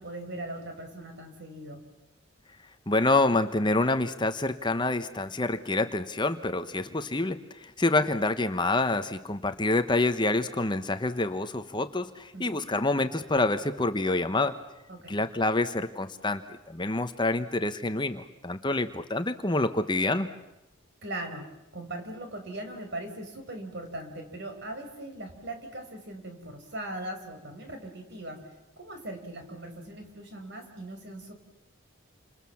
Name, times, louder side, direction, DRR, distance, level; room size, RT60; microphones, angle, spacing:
voice 1, 0.0-1.8 12.3-12.6 14.9-15.2 21.0-28.4 28.8-31.3, right 1 dB, 55° right, 5 dB, 5.4 m, -40 dB
voice 2, 2.9-14.5 15.1-20.3, left 2 dB, 20° left, 10 dB, 1.0 m, -27 dB
29.5 x 27.0 x 7.2 m, 0.96 s
head